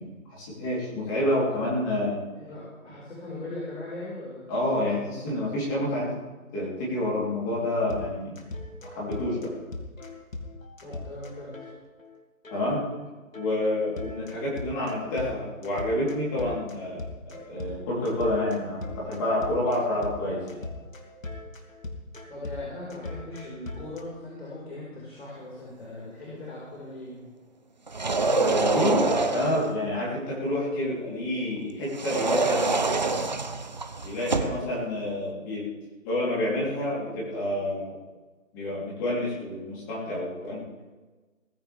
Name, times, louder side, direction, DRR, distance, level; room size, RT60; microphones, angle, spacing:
voice 1, 0.0-2.2 4.5-6.1 6.5-8.3 8.8-9.5 12.5-12.8 13.3-20.6 28.3-32.7 34.0-35.7 36.0-38.0 38.5-40.6, left 1 dB, 15° left, -6 dB, 3.8 m, -28 dB
voice 2, 2.3-4.5 10.8-11.7 22.3-27.2 34.3-34.8, left 2 dB, 45° left, -5 dB, 5.3 m, -39 dB
sound 1, 7.9-12.2 12.4-12.6 12.9-13.0 13.3-24.0, left 2 dB, 70° left, 2.8 m, -40 dB
sound 2, 27.9-29.7 31.9-34.6, right 3 dB, 30° right, 0.8 m, -26 dB
19.5 x 15.5 x 3.6 m, 1.3 s
figure-of-eight pair, 165°, 41 cm